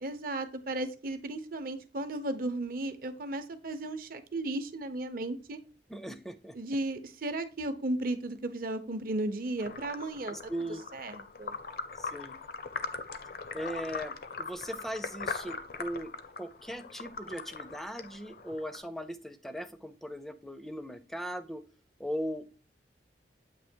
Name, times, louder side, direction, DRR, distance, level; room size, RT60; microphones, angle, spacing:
voice 1, 0.0-5.6 6.6-10.5 10.9-11.5, right 2 dB, 55° right, 9 dB, 0.7 m, -35 dB
voice 2, 5.9-6.5 10.3-10.8 12.0-12.4 13.5-16.1 16.4-21.6 22.0-22.5, equal, ahead, 10 dB, 0.5 m, -39 dB
sound 1, 9.6-18.9, left 4 dB, 55° left, 0.6 m, -41 dB
8.2 x 2.9 x 4.4 m, 0.36 s
head